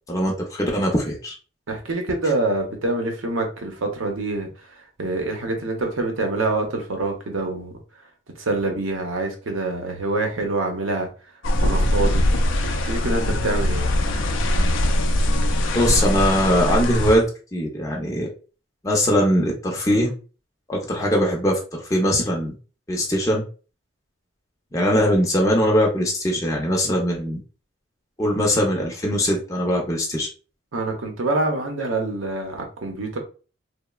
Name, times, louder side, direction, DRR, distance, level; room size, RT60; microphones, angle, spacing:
voice 1, 0.1-1.3 15.7-17.3 17.5-18.3 18.8-20.1 20.7-22.5 22.9-23.4 24.7-27.4 28.2-30.3, equal, 15° left, -1 dB, 0.5 m, -21 dB
voice 2, 1.7-4.5 5.0-7.8 8.4-11.1 11.6-12.2 12.6-13.9 30.7-33.2, right 2 dB, 85° right, 3 dB, 0.7 m, -26 dB
sound 1, 11.4-17.2, left 1 dB, 75° left, 0.4 m, -21 dB
3.0 x 2.0 x 2.2 m, 0.36 s
head